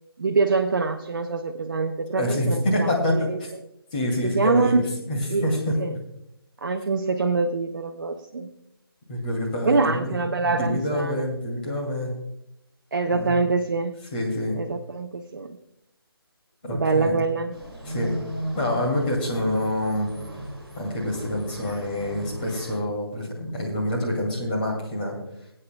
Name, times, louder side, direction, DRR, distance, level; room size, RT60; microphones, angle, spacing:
voice 1, 0.2-3.4 4.2-4.8 5.3-5.5 5.8-5.9 6.6-8.5 9.6-11.3 12.9-14.0 14.6-15.6 16.7-17.6, right 4 dB, 55° right, 4 dB, 0.7 m, -25 dB
voice 2, 2.1-3.5 3.9-5.7 9.1-12.1 13.1-13.3 14.1-14.6 16.6-17.2 17.8-18.2 18.5-20.1 20.8-25.2, left 1 dB, 20° left, -1 dB, 2.4 m, -26 dB
sound 1, 17.5-22.8, equal, ahead, 1.4 m, -36 dB
23.5 x 8.6 x 2.3 m, 0.80 s
figure-of-eight pair, 155°, 13 cm